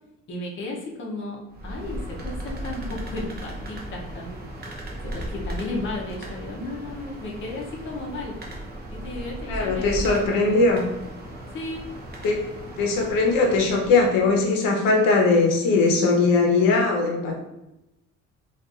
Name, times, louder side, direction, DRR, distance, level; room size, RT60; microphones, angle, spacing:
voice 1, 0.3-4.4 5.0-8.4 8.9-10.2 11.5-11.9, left 2 dB, 35° left, -2 dB, 0.6 m, -34 dB
sound 1, 1.5-14.5, equal, 30° right, 0.6 m, -36 dB
voice 2, 9.5-10.9 12.2-12.5 12.8-17.4, left 3 dB, 85° left, 1 dB, 0.7 m, -20 dB
3.9 x 2.4 x 2.4 m, 0.91 s
cardioid pair, 150°, 33 cm